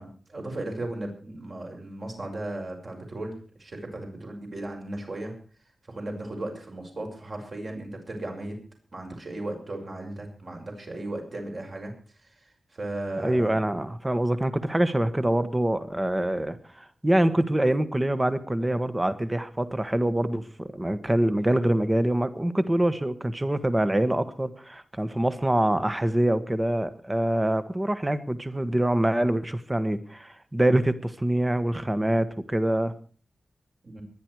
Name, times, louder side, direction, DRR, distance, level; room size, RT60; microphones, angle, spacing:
voice 1, 0.0-3.3 3.6-5.3 5.9-8.6 8.9-11.9 12.2-12.4 12.7-13.6 33.8-34.0, right 2 dB, 45° right, 2 dB, 6.1 m, -36 dB
voice 2, 13.2-32.9, right 1 dB, 15° right, 12 dB, 1.3 m, -25 dB
23.0 x 10.5 x 4.7 m, 0.41 s
wide cardioid pair, 130°, 0 cm